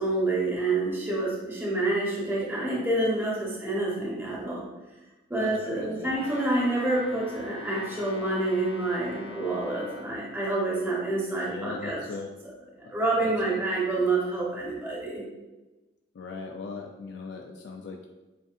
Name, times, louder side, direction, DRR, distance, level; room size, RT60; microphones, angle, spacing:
voice 1, 0.0-4.7 5.3-12.0 12.8-15.2, right 2 dB, 10° right, -6 dB, 0.9 m, -28 dB
voice 2, 5.4-6.1 11.5-12.3 12.8-12.9 13.2-13.6 16.1-18.1, left 3 dB, 75° left, 2 dB, 0.4 m, -39 dB
Brass instrument, 6.1-10.2, left 1 dB, 35° left, 0.8 m, -44 dB
7.3 x 2.6 x 2.4 m, 1.1 s
head